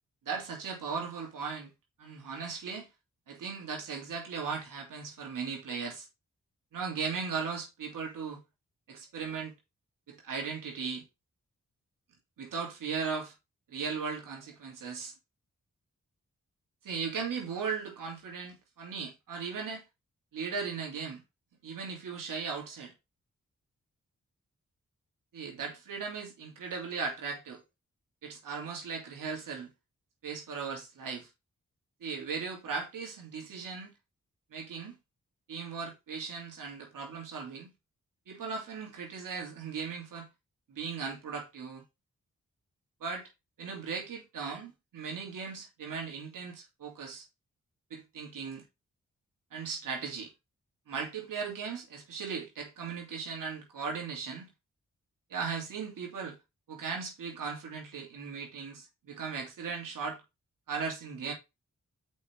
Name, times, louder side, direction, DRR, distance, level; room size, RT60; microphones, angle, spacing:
voice 1, 0.2-1.7 2.0-2.9 3.3-6.1 6.7-8.4 8.9-9.5 10.1-11.0 12.4-13.3 13.7-15.1 16.8-19.8 20.3-21.2 21.6-22.9 25.3-27.6 28.2-29.7 30.2-31.3 32.0-33.9 34.5-35.0 35.5-37.7 38.3-40.3 40.7-41.8 43.0-43.3 43.6-47.3 47.9-48.6 49.5-50.3 50.9-54.5 55.3-56.4 56.7-60.2 60.7-61.3, right 5 dB, 85° right, 3.0 m, -37 dB
6.3 x 5.6 x 4.6 m
supercardioid pair, 45°, 32 cm